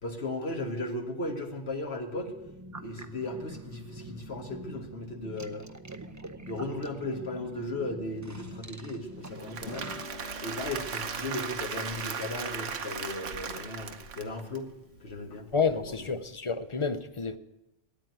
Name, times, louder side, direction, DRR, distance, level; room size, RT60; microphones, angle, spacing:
voice 1, 0.0-2.3 2.8-5.7 6.4-9.9 10.4-14.7 15.0-16.1, left 2 dB, 60° left, 1.9 m, -36 dB
sound 1, 2.2-10.1, right 2 dB, 20° right, 0.5 m, -45 dB
Applause / Crowd, 9.2-14.6, right 6 dB, 85° right, 1.3 m, -37 dB
Harp, 9.6-16.3, left 1 dB, 75° left, 1.6 m, -48 dB
voice 2, 15.5-17.4, left 5 dB, 35° left, 0.5 m, -29 dB
13.0 x 9.2 x 9.2 m
omnidirectional pair, 1.2 m